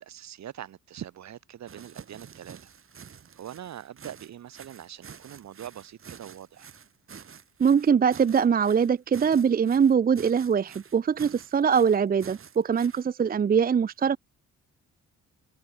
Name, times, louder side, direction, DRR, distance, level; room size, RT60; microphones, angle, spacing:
voice 1, 0.0-2.7 3.4-6.7, right 11 dB, 65° right, 2.2 m, -43 dB
sound 1, 1.7-13.0, right 7 dB, 45° right, 5.0 m, -48 dB
voice 2, 7.6-14.2, right 7 dB, 30° right, 0.6 m, -22 dB
cardioid pair, 90°, 30 cm